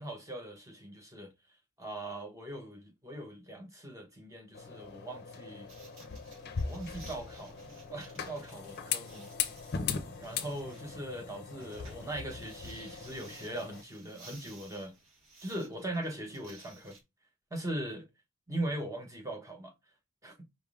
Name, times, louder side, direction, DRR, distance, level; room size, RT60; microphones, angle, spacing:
voice 1, 0.0-1.3 1.8-5.7 6.6-9.3 10.2-15.0 15.4-17.0 17.5-18.1 18.5-19.7 20.2-20.4, right 1 dB, 15° right, 0.8 m, -40 dB
sound 1, 4.5-13.8, left 6 dB, 45° left, 0.6 m, -39 dB
sound 2, 5.7-17.0, right 3 dB, 65° right, 1.7 m, -57 dB
5.0 x 3.4 x 2.3 m
head